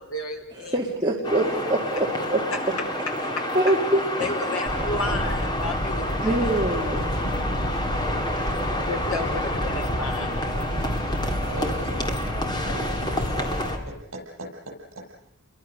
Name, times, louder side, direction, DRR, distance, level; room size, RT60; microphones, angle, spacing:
voice 1, 0.0-0.8 3.4-3.5 4.2-6.5 8.9-10.3, left 2 dB, 75° left, 3 dB, 4.4 m, -32 dB
voice 2, 0.7-2.4 3.5-4.3 6.2-7.1, right 1 dB, 20° right, -2 dB, 2.0 m, -24 dB
sound 1, 1.2-13.8, left 1 dB, 20° left, 2.0 m, -29 dB
sound 2, 4.7-13.7, equal, 40° left, 7.1 m, -30 dB
voice 3, 11.4-12.1 12.6-14.7, right 1 dB, 65° right, 1 dB, 7.8 m, -38 dB
29.5 x 22.5 x 6.5 m, 0.78 s
head